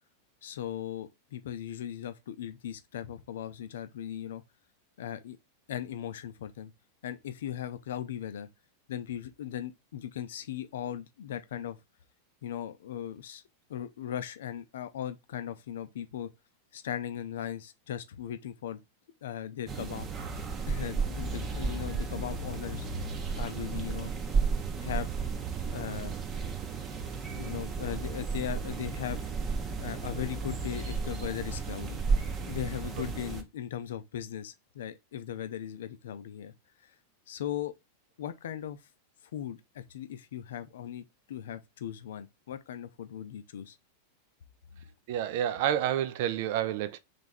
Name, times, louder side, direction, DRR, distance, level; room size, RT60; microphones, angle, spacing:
voice 1, 0.4-4.4 5.0-5.4 5.7-6.7 7.0-8.5 8.9-11.8 12.4-13.4 13.7-16.3 16.7-18.8 19.2-20.1 20.7-22.8 23.4-24.1 24.8-25.1 25.7-26.1 27.4-29.2 29.8-32.0 32.4-36.5 36.8-36.9 37.3-37.7 38.2-38.8 39.3-43.8 44.7-44.9, left 10 dB, 60° left, 0.5 m, -38 dB
sound 1, 19.7-33.4, right 4 dB, 25° right, 0.8 m, -33 dB
voice 2, 45.1-47.0, right 11 dB, 50° right, 0.5 m, -29 dB
3.4 x 3.4 x 4.1 m
figure-of-eight pair, 90°, 0 cm